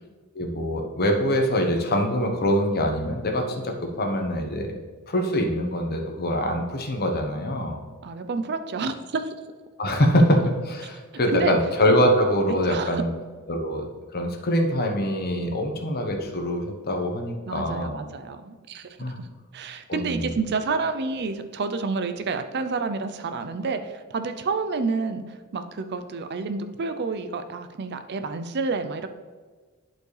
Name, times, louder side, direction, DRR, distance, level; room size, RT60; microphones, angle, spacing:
voice 1, 0.3-4.8 5.1-7.8 9.8-13.1 13.5-13.8 14.1-18.1 19.0-19.2 19.9-20.3, equal, 45° left, 3 dB, 1.1 m, -24 dB
voice 2, 8.0-9.3 11.3-11.5 12.7-13.0 15.6-15.7 17.4-18.9 19.5-29.1, right 4 dB, 50° right, 9 dB, 0.5 m, -29 dB
11.0 x 4.5 x 3.3 m, 1.4 s
head